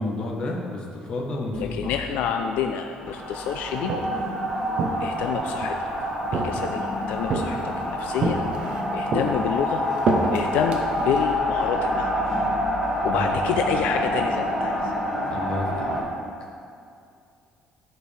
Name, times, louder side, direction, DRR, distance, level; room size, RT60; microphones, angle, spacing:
voice 1, 0.0-2.0 13.0-13.8 15.3-16.5, left 2 dB, 35° left, -1 dB, 1.1 m, -31 dB
voice 2, 1.6-3.9 5.0-5.9 6.3-9.8 10.2-12.1 13.0-14.9, left 8 dB, 80° left, 5 dB, 0.4 m, -28 dB
sound 1, 3.0-16.0, equal, 20° right, 1.6 m, -27 dB
Walk footsteps, 3.6-4.3 4.8-5.8 6.3-6.9 7.3-7.8 8.2-8.8 9.1-11.3, right 3 dB, 40° right, 0.7 m, -27 dB
12.5 x 4.5 x 3.4 m, 2.4 s
cardioid pair, 175°, 3 cm